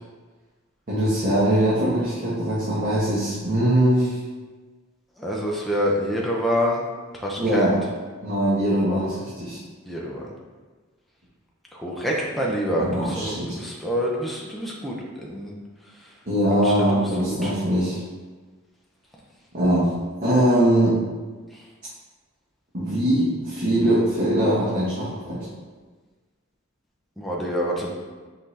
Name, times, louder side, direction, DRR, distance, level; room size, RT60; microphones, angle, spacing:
voice 1, 0.9-4.2 7.4-7.8 8.2-9.6 12.7-13.6 16.2-18.0 19.5-19.9 20.2-21.0 22.7-25.5, right 1 dB, 40° right, -11 dB, 1.1 m, -21 dB
voice 2, 5.2-6.8 7.2-7.8 9.9-10.3 11.7-15.5 16.6-17.0 17.3-17.5 27.2-27.9, equal, ahead, -4 dB, 0.5 m, -26 dB
5.4 x 2.8 x 3.2 m, 1.3 s
head